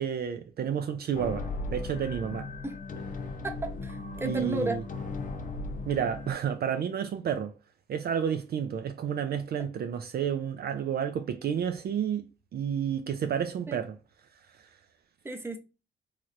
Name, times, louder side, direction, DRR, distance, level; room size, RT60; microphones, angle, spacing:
voice 1, 0.0-2.5 4.2-4.8 5.9-7.5 7.9-12.3 12.5-14.0, right 8 dB, 50° right, 0.4 m, -30 dB
sound 1, 1.1-6.3, left 3 dB, 40° left, 0.6 m, -37 dB
voice 2, 3.4-4.8 13.7-13.8 15.2-15.6, right 1 dB, 10° right, 0.7 m, -33 dB
3.2 x 2.8 x 2.4 m
cardioid pair, 90°, 20 cm